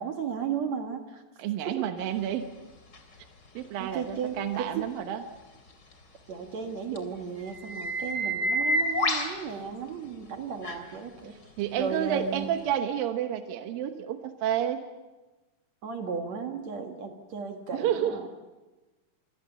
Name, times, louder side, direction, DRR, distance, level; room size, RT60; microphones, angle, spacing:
voice 1, 0.0-1.2 1.6-1.9 3.8-4.9 6.3-11.4 11.8-12.5 15.8-18.3, right 6 dB, 55° right, 4 dB, 2.7 m, -35 dB
voice 2, 1.4-2.5 3.5-5.2 11.6-14.8 17.7-18.3, right 10 dB, 80° right, 6 dB, 2.9 m, -30 dB
sound 1, 2.9-3.0 7.0-7.1 7.5-9.3 10.6-10.8 12.4-12.5, equal, 30° left, 3.0 m, -28 dB
26.5 x 26.0 x 7.0 m, 1.2 s
omnidirectional pair, 4.0 m